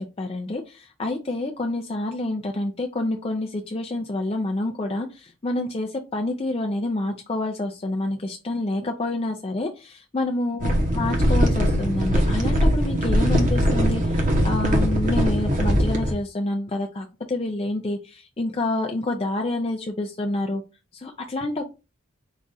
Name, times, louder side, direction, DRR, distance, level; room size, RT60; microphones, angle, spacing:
voice 1, 0.0-20.6 20.9-21.7, left 2 dB, 30° left, 3 dB, 0.4 m, -28 dB
sound 1, 10.6-16.1, equal, 40° right, 0.9 m, -21 dB
4.9 x 2.4 x 4.0 m, 0.29 s
head